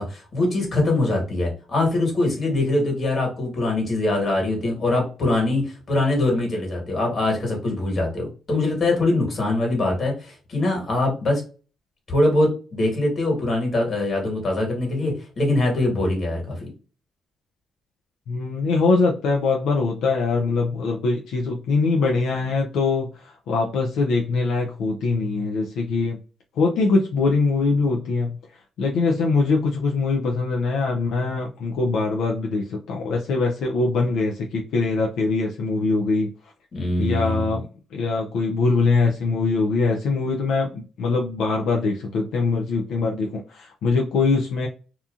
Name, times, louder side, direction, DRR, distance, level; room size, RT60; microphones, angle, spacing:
voice 1, 0.0-11.4 12.1-16.7 36.7-37.6, left 2 dB, 45° left, 0 dB, 1.5 m, -23 dB
voice 2, 18.3-26.2 26.6-28.4 28.8-36.3 37.0-37.7 37.9-44.7, left 3 dB, 80° left, 0 dB, 0.4 m, -22 dB
2.8 x 2.3 x 2.4 m, 0.35 s
cardioid pair, 90°, 0 cm